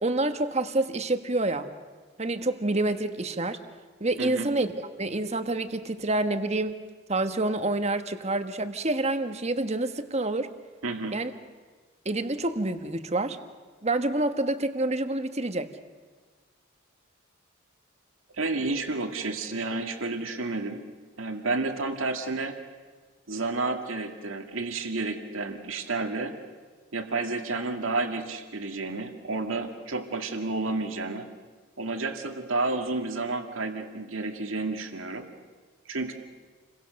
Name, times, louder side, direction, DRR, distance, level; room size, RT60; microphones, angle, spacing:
voice 1, 0.0-1.7 2.2-3.6 4.0-4.7 5.0-6.8 7.1-10.5 11.1-11.3 12.0-13.4 13.8-15.7, right 2 dB, 35° right, 8 dB, 1.3 m, -27 dB
voice 2, 4.2-4.5 10.8-11.2 18.4-20.8 21.2-22.6 23.3-26.3 26.9-31.2 31.8-35.3 35.9-36.1, right 3 dB, 85° right, 5 dB, 2.2 m, -31 dB
29.5 x 23.0 x 6.5 m, 1.4 s
head